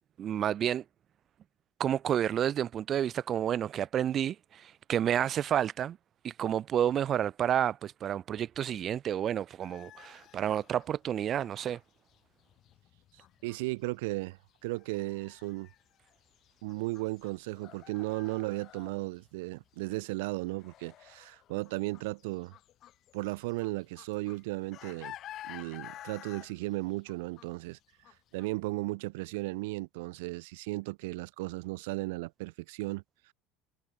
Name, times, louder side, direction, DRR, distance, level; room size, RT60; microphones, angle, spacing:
voice 1, 0.2-0.8 1.8-6.0 6.2-11.8, right 10 dB, 40° right, 2.3 m, -30 dB
sound 1, 9.6-19.3 19.5-28.5, left 12 dB, 50° left, 7.7 m, -52 dB
voice 2, 13.4-15.7 16.6-22.5 23.1-25.1 25.5-27.8 28.3-33.0, right 23 dB, 70° right, 4.3 m, -35 dB
hypercardioid pair, 85°, 0 cm